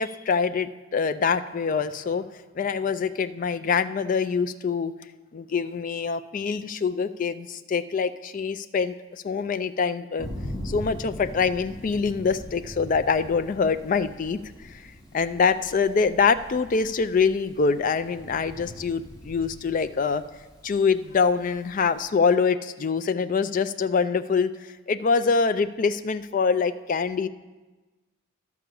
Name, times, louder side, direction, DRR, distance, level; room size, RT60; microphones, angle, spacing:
voice 1, 0.0-2.2 2.6-4.9 5.3-10.3 10.6-14.4 15.1-20.2 20.6-24.5 24.9-27.3, left 5 dB, 40° left, 11 dB, 0.3 m, -24 dB
Thunder, 10.2-22.1, equal, 15° left, 2.2 m, -42 dB
12.0 x 4.8 x 6.9 m, 1.2 s
head